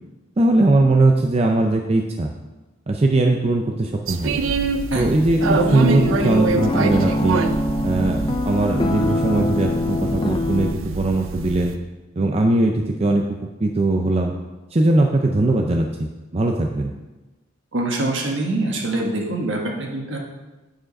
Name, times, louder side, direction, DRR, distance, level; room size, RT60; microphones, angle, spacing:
voice 1, 0.4-2.3 2.9-4.4 5.0-7.4 7.8-11.7 12.2-14.3 14.7-16.9, right 2 dB, 30° right, 2 dB, 0.5 m, -20 dB
sound 1, 4.1-11.7, right 4 dB, 80° right, 0.5 m, -26 dB
sound 2, 5.4-10.7, left 2 dB, 25° left, 0.5 m, -23 dB
voice 2, 17.7-20.2, right 2 dB, 65° right, 1 dB, 1.4 m, -24 dB
8.7 x 5.1 x 5.3 m, 1.1 s
head